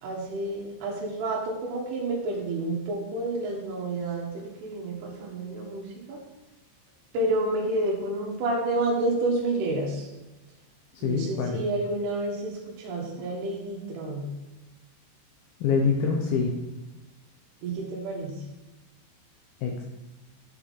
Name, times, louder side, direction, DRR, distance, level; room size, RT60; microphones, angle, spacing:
voice 1, 0.0-6.2 7.1-10.1 11.0-14.3 17.6-18.4, right 2 dB, 65° right, -3 dB, 3.1 m, -29 dB
voice 2, 11.0-11.6 15.6-16.5 19.6-19.8, left 5 dB, 85° left, 2 dB, 2.1 m, -25 dB
10.5 x 5.5 x 4.2 m, 1.1 s
omnidirectional pair, 5.4 m